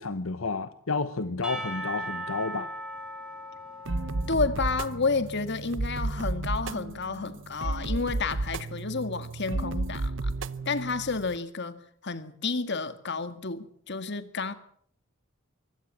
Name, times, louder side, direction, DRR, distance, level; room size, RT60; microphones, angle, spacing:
voice 1, 0.0-2.7, left 4 dB, 85° left, 12 dB, 1.1 m, -31 dB
Percussion / Church bell, 1.4-5.1, right 1 dB, 5° right, 6.0 m, -38 dB
sound 1, 3.8-11.4, right 2 dB, 65° right, 0.9 m, -33 dB
voice 2, 4.3-10.3 10.7-11.8 12.0-14.5, left 4 dB, 60° left, 11 dB, 1.9 m, -30 dB
24.0 x 16.0 x 7.3 m, 0.64 s
head